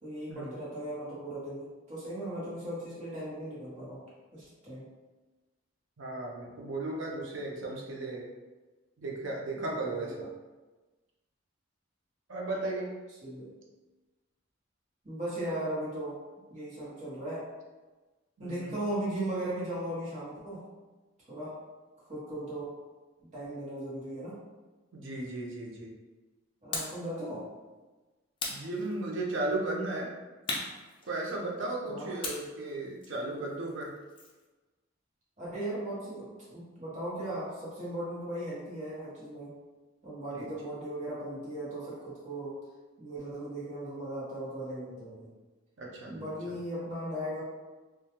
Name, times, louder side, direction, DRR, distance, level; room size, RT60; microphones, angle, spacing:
voice 1, 0.0-4.0 4.3-4.8 9.5-10.2 13.2-13.5 15.0-16.2 16.5-17.4 18.4-20.6 21.3-21.6 22.1-22.7 23.3-24.4 26.6-27.4 31.8-32.1 35.4-39.5 40.0-42.6 43.0-45.3 46.1-47.4, right 1 dB, 40° right, -9 dB, 1.0 m, -37 dB
voice 2, 6.0-8.2 9.0-10.3 12.3-12.9 18.4-18.7 24.9-25.9 28.5-30.1 31.1-33.9 40.4-40.5 45.8-46.3, right 2 dB, 70° right, -2 dB, 0.6 m, -35 dB
sound 1, 26.7-27.1 28.4-29.3 30.5-31.6 32.2-34.4, left 3 dB, 25° left, 0.4 m, -39 dB
2.2 x 2.2 x 2.9 m, 1.2 s
head